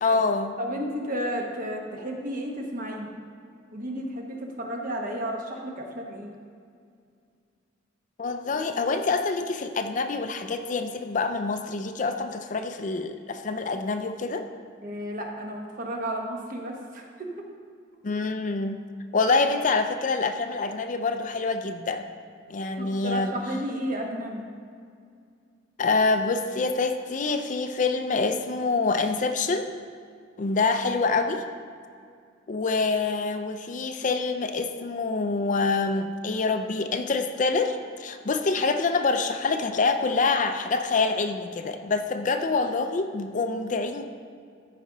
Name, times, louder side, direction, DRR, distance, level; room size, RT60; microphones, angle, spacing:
voice 1, 0.0-0.6 8.2-14.5 18.0-18.8 19.1-22.0 22.5-23.4 25.8-29.7 30.4-31.4 32.5-44.0, left 3 dB, 40° left, 7 dB, 0.4 m, -26 dB
voice 2, 0.6-3.1 3.7-6.3 14.8-17.3 22.8-24.4, equal, 45° right, 1 dB, 1.1 m, -33 dB
13.5 x 5.1 x 3.9 m, 2.3 s
head